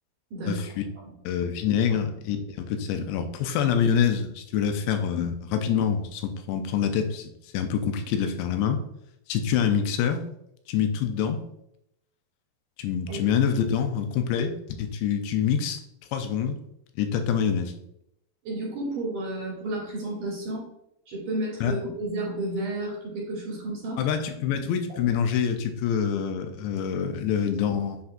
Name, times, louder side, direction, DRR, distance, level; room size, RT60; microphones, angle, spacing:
voice 1, 0.3-0.6 1.0-1.1 13.1-13.2 18.4-20.7 21.1-24.0, right 1 dB, 55° right, -4 dB, 3.9 m, -31 dB
voice 2, 1.3-8.8 9.3-10.3 10.7-11.4 12.8-14.5 14.8-15.8 16.1-16.6 17.0-17.7 21.6-21.7 24.0-28.0, left 8 dB, 85° left, 6 dB, 2.9 m, -26 dB
8.3 x 5.7 x 2.6 m, 0.79 s
omnidirectional pair, 4.9 m